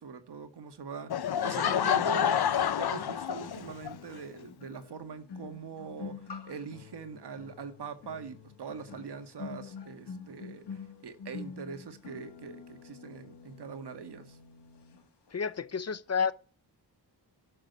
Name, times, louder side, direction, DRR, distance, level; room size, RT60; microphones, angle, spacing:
voice 1, 0.0-14.4, right 5 dB, 80° right, 1.8 m, -43 dB
Laughter / Crowd, 1.1-3.9, left 9 dB, 70° left, 0.9 m, -28 dB
sound 1, 3.9-15.0 15.3-15.6, left 5 dB, 85° left, 2.4 m, -47 dB
voice 2, 15.3-16.3, left 6 dB, 40° left, 0.7 m, -30 dB
12.0 x 6.6 x 9.2 m
wide cardioid pair, 160°, 40 cm